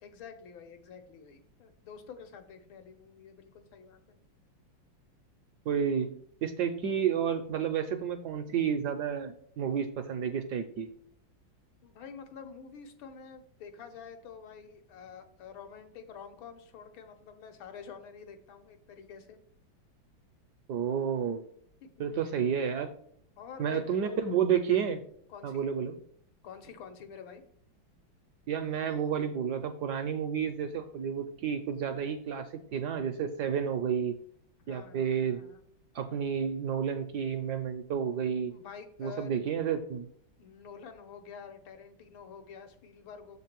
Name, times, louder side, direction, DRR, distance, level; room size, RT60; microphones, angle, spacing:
voice 1, 0.0-4.2 11.8-19.4 21.8-21.9 22.2-22.3 23.4-24.2 25.3-25.7 26.4-27.4 34.6-35.6 38.5-39.4 40.4-43.4, left 6 dB, 80° left, 6 dB, 1.7 m, -48 dB
voice 2, 5.7-6.1 6.4-10.9 20.7-21.4 22.0-22.9 23.6-25.0 25.4-25.9 28.5-34.2 34.7-35.4 35.9-38.5 39.0-40.1, right 7 dB, 70° right, 8 dB, 1.0 m, -31 dB
7.1 x 3.7 x 5.9 m, 0.63 s
omnidirectional pair, 2.2 m